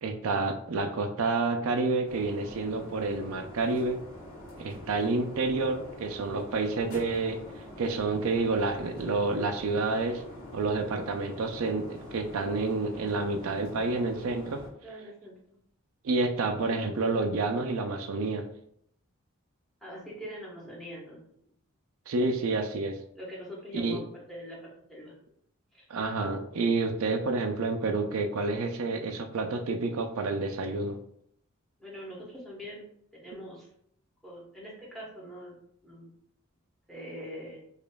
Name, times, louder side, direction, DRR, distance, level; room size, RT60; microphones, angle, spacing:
voice 1, 0.0-4.0 4.6-7.4 7.8-10.2 10.5-14.6 16.0-18.4 22.1-23.0 23.7-24.0 25.9-31.0, right 3 dB, 80° right, 6 dB, 0.4 m, -29 dB
sound 1, 2.1-14.7, left 1 dB, 90° left, 1.2 m, -45 dB
voice 2, 14.8-15.6 19.8-21.3 22.2-22.4 23.1-25.1 25.7-25.9 31.8-32.8 33.1-33.7 34.2-35.5 35.8-36.1 36.9-37.6, equal, ahead, -5 dB, 0.9 m, -43 dB
4.9 x 2.4 x 2.2 m, 0.68 s
head